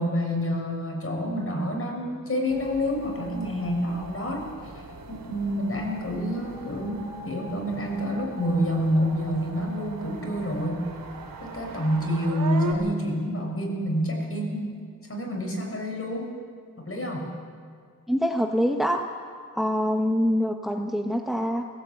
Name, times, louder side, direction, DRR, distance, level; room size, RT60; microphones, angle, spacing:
voice 1, 0.0-4.7 5.1-10.8 11.4-14.7 15.1-16.3 16.8-17.3, equal, 40° left, 1 dB, 6.1 m, -28 dB
sound 1, 2.5-12.7, right 4 dB, 80° right, 3.2 m, -40 dB
voice 2, 18.1-19.0 19.5-21.6, equal, ahead, 3 dB, 1.4 m, -24 dB
18.5 x 16.5 x 8.5 m, 2.1 s
cardioid pair, 75°, 33 cm